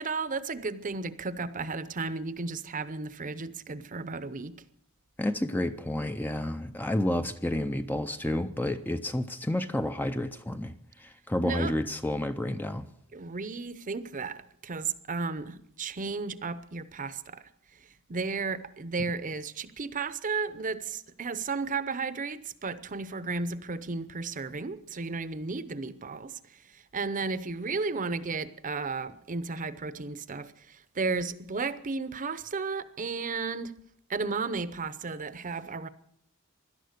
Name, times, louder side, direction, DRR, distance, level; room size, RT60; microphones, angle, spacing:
voice 1, 0.0-4.6 11.4-11.7 13.1-33.7 34.1-35.9, right 4 dB, 35° right, 0.8 m, -34 dB
voice 2, 5.2-12.9, left 1 dB, 10° left, 0.5 m, -30 dB
17.0 x 12.0 x 6.6 m
head